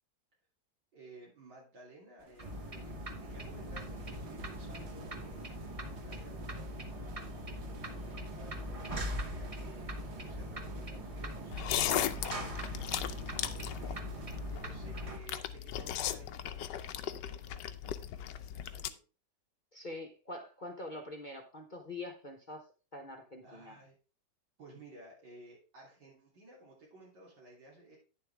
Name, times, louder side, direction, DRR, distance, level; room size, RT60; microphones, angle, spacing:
voice 1, 0.9-19.0 23.4-23.9 24.6-28.0, right 2 dB, 85° right, -5 dB, 3.7 m, -56 dB
sound 1, 2.2-14.4, right 4 dB, 45° right, 1.0 m, -55 dB
sound 2, 2.4-15.2, equal, 25° right, 0.8 m, -41 dB
sound 3, 11.5-18.9, left 11 dB, 85° left, 1.3 m, -37 dB
voice 2, 19.7-22.6 22.9-23.8, left 2 dB, 35° left, 2 dB, 0.9 m, -44 dB
9.9 x 7.1 x 3.4 m, 0.35 s
omnidirectional pair, 1.9 m